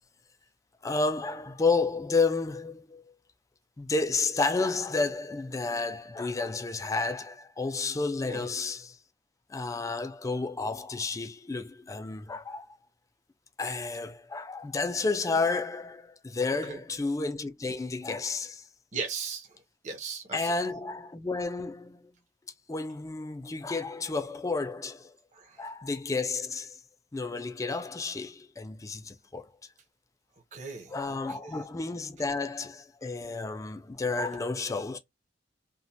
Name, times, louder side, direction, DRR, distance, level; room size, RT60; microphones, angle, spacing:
voice 1, 0.8-3.1 3.8-9.0 9.5-12.8 13.6-18.7 20.3-22.1 22.7-25.2 25.6-26.8 27.1-29.5 30.9-35.0, left 3 dB, 20° left, 0.3 m, -31 dB
voice 2, 18.9-19.6 19.8-20.5 25.3-25.6 30.5-31.6, right 5 dB, 40° right, 0.7 m, -38 dB
2.9 x 2.1 x 2.6 m
head